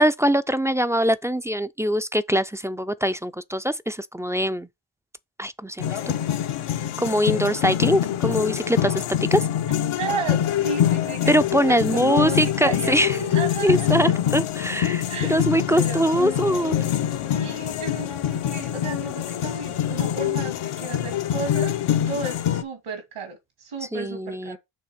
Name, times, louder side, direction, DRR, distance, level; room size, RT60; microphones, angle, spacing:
voice 1, 0.0-4.7 5.4-6.1 7.0-9.0 9.3-9.5 11.3-13.2 13.6-16.8 23.9-24.6, equal, 5° right, 0.3 m, -22 dB
sound 1, 5.8-22.6, left 10 dB, 80° left, 0.8 m, -25 dB
voice 2, 9.9-11.3 11.7-14.1 15.1-15.4 15.7-16.1 17.3-21.7 22.1-24.6, right 4 dB, 85° right, 2.8 m, -33 dB
6.4 x 3.4 x 5.9 m
cardioid pair, 70°, 50 cm